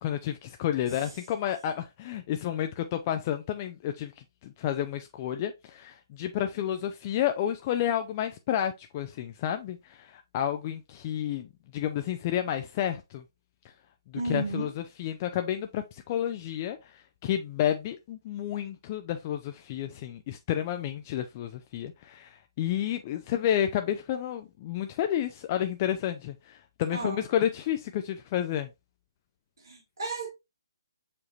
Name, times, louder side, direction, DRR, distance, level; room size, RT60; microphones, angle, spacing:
voice 1, 0.0-4.1 4.4-13.2 14.2-28.7, left 10 dB, 30° left, 0.4 m, -31 dB
voice 2, 14.1-14.7 26.9-27.2 29.7-30.3, right 3 dB, 65° right, 1.9 m, -33 dB
7.0 x 2.9 x 2.5 m
figure-of-eight pair, 140°, 2 cm